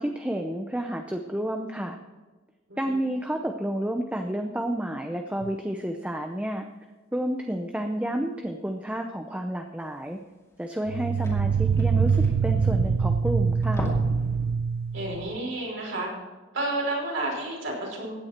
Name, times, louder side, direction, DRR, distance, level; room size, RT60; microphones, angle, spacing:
voice 1, 0.0-2.0 2.8-6.6 7.1-10.2 10.6-13.9, right 1 dB, 5° right, 4 dB, 0.7 m, -30 dB
voice 2, 2.7-3.0 11.0-11.3 14.9-16.1 16.5-18.2, right 2 dB, 65° right, -2 dB, 5.1 m, -31 dB
sound 1, 5.4-5.5 10.9-15.4, right 5 dB, 85° right, 0.5 m, -24 dB
sound 2, 10.2-10.3 10.5-10.6 10.8-13.1 13.5-14.3 14.6-14.8 15.2-15.3, left 1 dB, 15° left, 2.5 m, -37 dB
16.0 x 9.7 x 4.4 m, 1.3 s
head